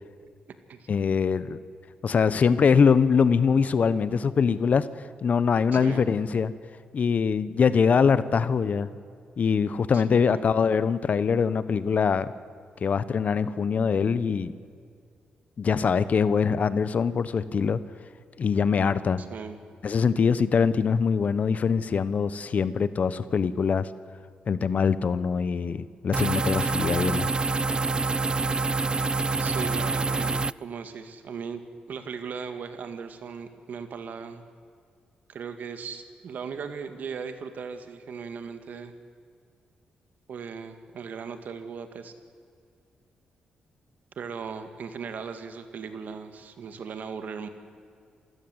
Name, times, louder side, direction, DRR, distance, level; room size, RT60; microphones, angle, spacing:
voice 1, 0.9-1.6 2.0-4.9 5.2-6.5 6.9-8.9 9.4-12.3 12.8-14.5 15.6-17.8 18.4-19.2 19.8-23.9 24.5-27.3, left 6 dB, 55° left, 15 dB, 1.0 m, -23 dB
voice 2, 5.7-6.1 9.9-10.5 19.2-19.6 29.4-31.6 31.9-34.4 35.3-38.9 40.3-42.1 44.2-47.5, right 6 dB, 65° right, 8 dB, 2.1 m, -38 dB
sound 1, 26.1-30.5, right 3 dB, 30° right, 0.5 m, -26 dB
28.0 x 16.0 x 8.1 m, 2.2 s
supercardioid pair, 60°, 3 cm